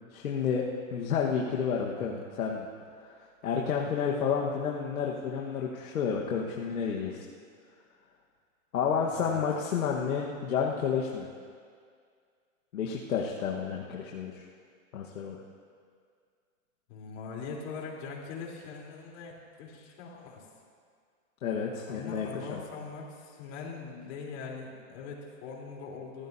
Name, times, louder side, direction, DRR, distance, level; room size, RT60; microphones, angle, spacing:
voice 1, 0.1-0.6 0.9-2.7 3.0-3.1 3.4-7.2 8.7-11.3 12.7-14.4 14.9-15.4 21.4-22.6, left 6 dB, 85° left, -2 dB, 1.5 m, -30 dB
voice 2, 2.0-2.3 9.1-9.4 16.9-20.5 21.9-26.3, left 5 dB, 50° left, -2 dB, 3.7 m, -42 dB
26.0 x 14.5 x 2.8 m, 2.1 s
hypercardioid pair, 135°, 42 cm